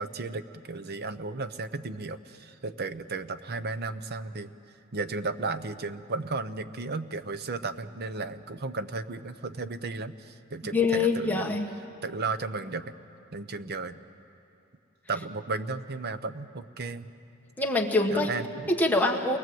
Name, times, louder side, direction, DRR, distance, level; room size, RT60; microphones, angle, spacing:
voice 1, 0.0-4.5 4.9-11.5 12.0-12.9 13.3-14.0 15.1-17.1 18.1-18.7, right 3 dB, 50° right, 11 dB, 0.8 m, -34 dB
voice 2, 10.7-11.7 17.6-18.3 18.8-19.4, left 3 dB, 10° left, 0 dB, 1.5 m, -24 dB
28.5 x 21.5 x 7.8 m, 2.7 s
head